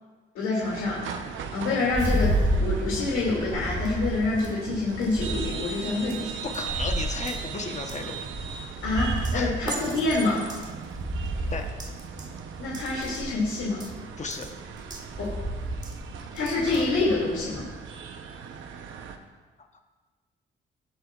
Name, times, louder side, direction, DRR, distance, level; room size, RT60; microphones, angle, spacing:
voice 1, 0.3-1.0 1.5-6.4 8.8-10.4 12.6-13.8 15.2-15.3 16.3-17.7, left 3 dB, 85° left, -6 dB, 2.6 m, -27 dB
sound 1, 0.6-19.2, right 6 dB, 80° right, 0.9 m, -39 dB
sound 2, 1.9-17.7, right 1 dB, 20° right, 1.5 m, -32 dB
voice 2, 6.2-8.2 9.3-9.5 11.5-11.7 14.2-14.5 19.7-19.8, left 4 dB, 35° left, 4 dB, 1.1 m, -34 dB
18.0 x 7.6 x 2.5 m, 1.3 s
cardioid pair, 90°, 20 cm